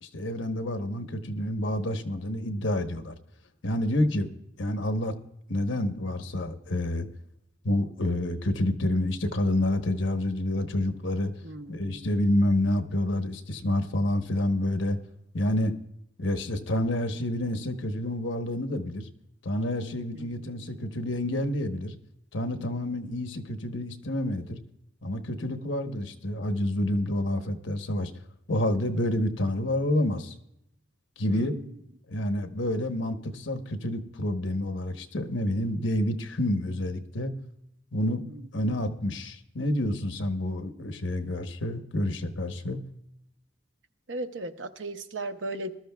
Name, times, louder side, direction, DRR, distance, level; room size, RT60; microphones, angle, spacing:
voice 1, 0.0-3.1 3.6-5.1 5.5-7.1 7.6-11.3 11.7-15.0 15.3-15.8 16.2-19.1 19.4-21.9 22.3-24.6 25.0-28.1 28.5-30.3 31.2-31.5 32.1-37.3 37.9-38.2 38.5-42.8, left 1 dB, 80° left, 8 dB, 1.0 m, -28 dB
voice 2, 11.4-12.1 31.3-31.7 38.6-38.7 44.1-45.8, right 2 dB, 75° right, 7 dB, 0.8 m, -36 dB
20.5 x 12.5 x 2.3 m, 0.80 s
head